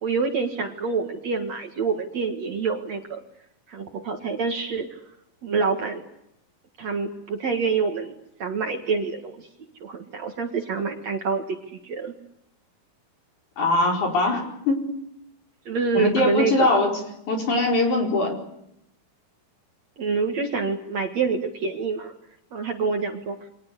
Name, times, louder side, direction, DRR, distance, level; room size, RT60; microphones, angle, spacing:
voice 1, 0.0-3.2 3.7-4.9 5.4-6.0 6.8-8.1 8.4-9.5 9.8-12.1 15.7-16.8 20.0-22.1 22.5-23.4, right 4 dB, 50° right, 3 dB, 2.6 m, -26 dB
voice 2, 13.6-14.9 15.9-16.9 17.3-18.4, left 2 dB, 50° left, 1 dB, 6.1 m, -22 dB
29.0 x 24.0 x 8.2 m, 0.80 s
omnidirectional pair, 4.4 m